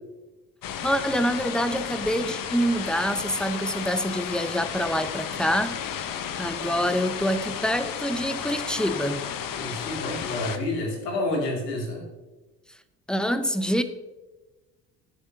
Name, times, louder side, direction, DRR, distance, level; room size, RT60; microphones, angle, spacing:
sound 1, 0.6-10.6, left 8 dB, 45° left, 1.0 m, -33 dB
voice 1, 0.8-9.3 13.1-13.8, equal, ahead, 11 dB, 0.7 m, -26 dB
voice 2, 9.6-12.1, left 2 dB, 80° left, 0 dB, 2.5 m, -29 dB
17.0 x 8.0 x 2.8 m, 1.2 s
figure-of-eight pair, 55°, 48 cm